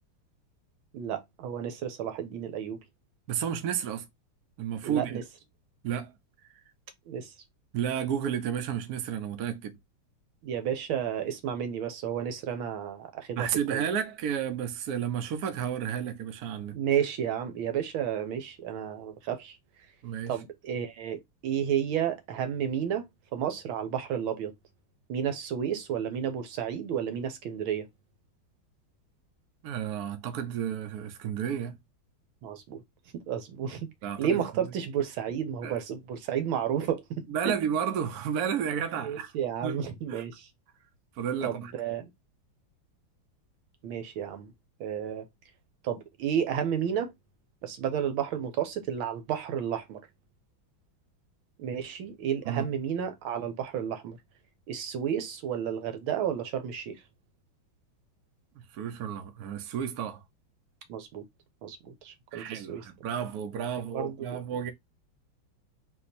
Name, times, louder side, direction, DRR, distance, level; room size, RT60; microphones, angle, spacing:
voice 1, 0.9-2.8 4.8-5.2 7.1-7.3 10.4-13.8 16.7-19.6 20.3-23.1 23.3-24.5 25.1-27.9 32.4-32.8 33.1-33.9 34.2-37.0 37.5-37.6 39.0-40.5 41.4-42.1 43.8-44.5 44.8-45.3 45.8-47.1 47.6-50.0 51.6-54.2 54.7-57.0 60.9-61.2 61.6-62.9 63.8-64.4, right 9 dB, 80° right, 1.7 m, -32 dB
voice 2, 3.3-4.0 4.6-5.1 5.8-6.1 7.7-9.8 13.4-16.8 20.0-20.4 29.6-31.8 34.0-34.4 35.6-35.7 37.3-39.3 39.6-39.8 40.1-40.2 41.2-41.7 52.4-52.7 58.7-60.2 62.3-64.7, right 8 dB, 60° right, 1.2 m, -32 dB
4.2 x 2.9 x 4.1 m
omnidirectional pair, 2.2 m